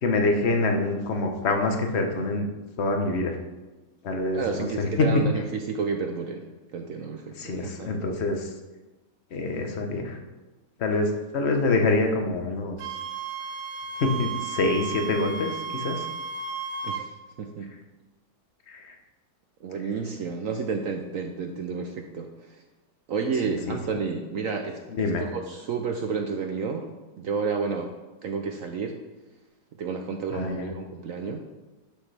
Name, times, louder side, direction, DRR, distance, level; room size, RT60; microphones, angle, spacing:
voice 1, 0.0-2.5 2.8-3.4 4.0-5.3 7.3-8.5 9.3-10.2 10.8-12.8 14.0-16.1 18.7-18.9 23.5-24.0 24.9-25.2 30.3-30.7, left 2 dB, 45° left, 3 dB, 1.2 m, -26 dB
voice 2, 4.3-7.9 16.8-17.1 17.4-17.7 19.6-22.6 23.1-26.9 27.2-27.9 28.2-29.0 29.8-31.4, right 5 dB, 65° right, 4 dB, 0.9 m, -31 dB
Wind instrument woodwind instrument, 12.8-17.1, right 5 dB, 85° right, 1.4 m, -34 dB
11.5 x 6.3 x 3.4 m, 1.2 s
omnidirectional pair, 1.9 m